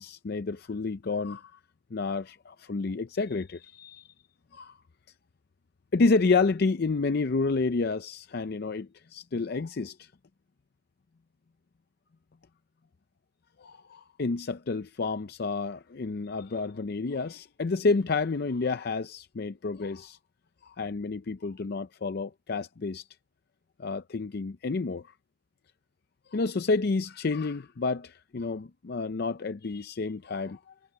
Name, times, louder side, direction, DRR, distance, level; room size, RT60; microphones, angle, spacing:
voice 1, 0.0-1.6 1.9-4.1 4.5-4.8 5.9-10.1 13.6-20.2 20.6-23.0 23.8-25.1 26.3-30.7, left 3 dB, 55° left, 0.5 m, -30 dB
head